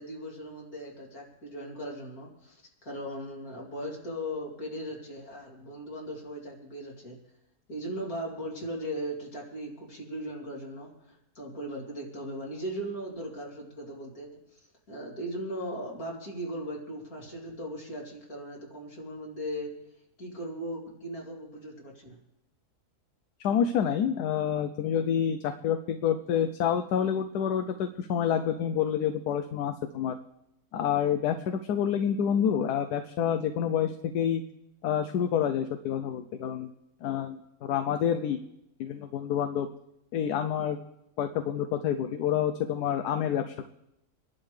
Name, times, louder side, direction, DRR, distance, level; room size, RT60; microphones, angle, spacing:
voice 1, 0.0-2.6 2.8-7.2 7.7-14.3 14.9-19.7 20.2-22.2, equal, 65° left, -3 dB, 3.4 m, -38 dB
voice 2, 23.4-30.2 30.7-34.4 34.8-36.7 37.0-38.4 38.8-39.7 40.1-40.8 41.2-43.7, left 8 dB, 85° left, 8 dB, 1.2 m, -28 dB
25.0 x 11.5 x 3.3 m, 0.85 s
omnidirectional pair, 1.7 m